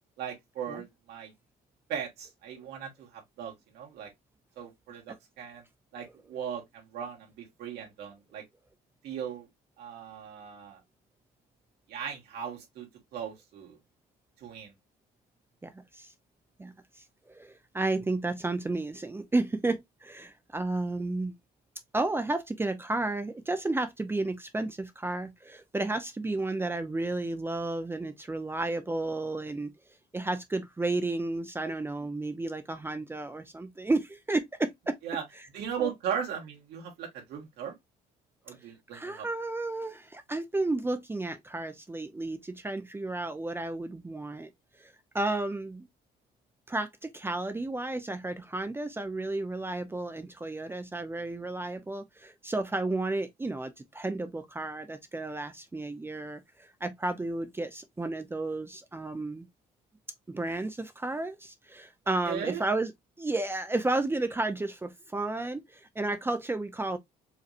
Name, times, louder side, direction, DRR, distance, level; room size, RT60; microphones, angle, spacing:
voice 1, 0.2-1.3 1.9-4.1 4.6-5.6 5.9-8.4 9.0-9.5 9.8-10.8 11.9-13.8 14.4-14.7 35.0-35.2 35.5-37.7 38.5-39.3 62.2-62.6, right 8 dB, 75° right, 2.0 m, -38 dB
voice 2, 15.6-16.1 16.6-16.7 17.3-21.3 21.9-29.7 30.1-35.0 35.4-35.5 35.8-35.9 38.5-38.6 38.9-44.5 44.8-45.9 46.7-59.5 60.3-62.9 63.2-67.0, right 2 dB, 15° right, 0.6 m, -32 dB
4.9 x 3.1 x 2.6 m
cardioid pair, 110°, 17 cm